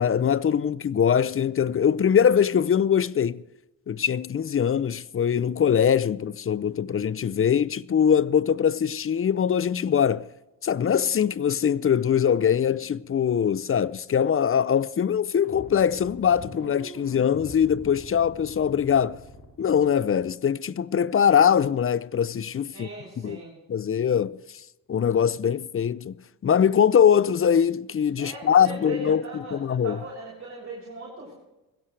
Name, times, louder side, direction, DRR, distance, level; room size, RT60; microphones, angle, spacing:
voice 1, 0.0-3.4 3.9-10.3 10.6-19.2 19.6-22.9 23.2-23.4 23.7-24.4 24.9-26.1 26.4-29.2 29.5-30.0, left 8 dB, 35° left, 0.5 m, -22 dB
sound 1, 15.4-20.3, left 2 dB, 60° left, 5.1 m, -43 dB
voice 2, 22.7-23.6 28.2-31.3, right 2 dB, 35° right, 7.0 m, -39 dB
20.5 x 16.0 x 3.3 m
cardioid pair, 65°, 37 cm